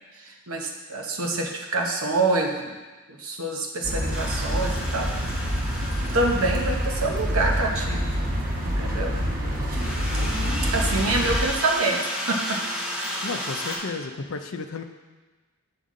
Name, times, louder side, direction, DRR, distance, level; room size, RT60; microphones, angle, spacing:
voice 1, 0.2-2.7 3.1-5.1 5.4-5.5 6.1-8.1 8.6-9.1 10.7-12.6, right 2 dB, 70° right, 1 dB, 1.0 m, -26 dB
sound 1, 3.8-11.5, equal, 40° right, 1.1 m, -27 dB
sound 2, 4.1-8.0 9.7-13.8, equal, 5° right, 1.0 m, -33 dB
voice 2, 9.4-9.8 13.2-14.8, left 4 dB, 65° left, 6 dB, 0.5 m, -33 dB
7.8 x 5.5 x 3.7 m, 1.3 s
head